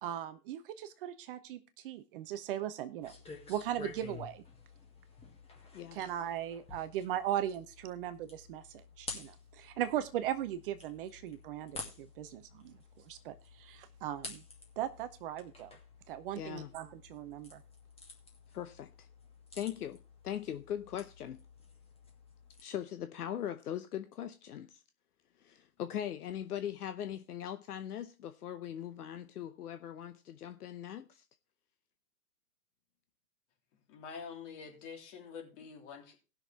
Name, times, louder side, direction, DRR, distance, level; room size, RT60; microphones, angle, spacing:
voice 1, 0.0-3.1 3.5-4.4 5.8-14.4 14.8-15.8 16.1-17.6, right 11 dB, 35° right, 0.7 m, -38 dB
sound 1, 3.0-22.6, left 3 dB, 10° left, 2.1 m, -51 dB
voice 2, 16.3-16.7 18.5-19.1 19.5-20.0 20.2-21.4 22.6-24.7 25.4-31.2, left 10 dB, 70° left, 0.9 m, -40 dB
voice 3, 33.9-36.1, left 6 dB, 45° left, 3.2 m, -46 dB
18.0 x 6.3 x 3.4 m
hypercardioid pair, 120°, 48 cm